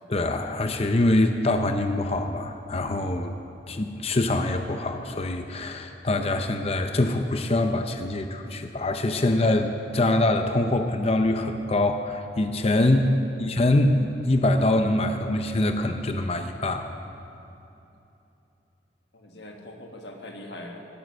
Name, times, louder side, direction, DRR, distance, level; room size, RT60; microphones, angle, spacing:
voice 1, 0.1-3.4 3.7-13.1 13.4-16.9, left 2 dB, 35° left, 6 dB, 0.6 m, -24 dB
voice 2, 13.1-13.6 19.1-20.9, left 1 dB, 70° left, 2 dB, 1.7 m, -42 dB
17.0 x 9.2 x 6.4 m, 2.9 s
head